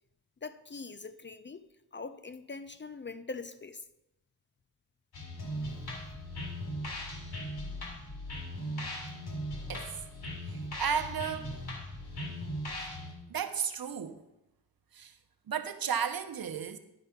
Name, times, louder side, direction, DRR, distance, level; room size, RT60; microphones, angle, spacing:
voice 1, 0.4-3.8, left 4 dB, 30° left, 0.4 m, -43 dB
sound 1, 5.1-13.1, equal, 75° left, 2.2 m, -38 dB
voice 2, 10.5-11.5 13.3-14.2 14.9-15.1 15.5-16.8, right 7 dB, 65° right, 0.8 m, -33 dB
11.0 x 4.6 x 5.7 m
wide cardioid pair, 80°, 38 cm